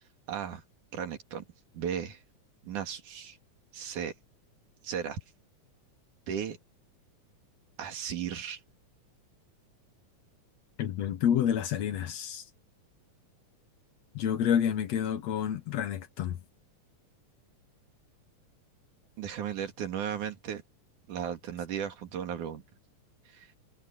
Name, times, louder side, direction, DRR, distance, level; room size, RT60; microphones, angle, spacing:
voice 1, 0.3-0.6 0.9-1.4 1.7-2.2 2.6-3.4 3.7-4.1 4.8-5.2 6.3-6.6 7.8-8.6 19.2-20.6 21.1-22.6 23.3-23.5, right 8 dB, 75° right, 3.6 m, -35 dB
voice 2, 10.8-12.4 14.2-16.4, left 9 dB, 65° left, 2.0 m, -29 dB
omnidirectional pair, 3.6 m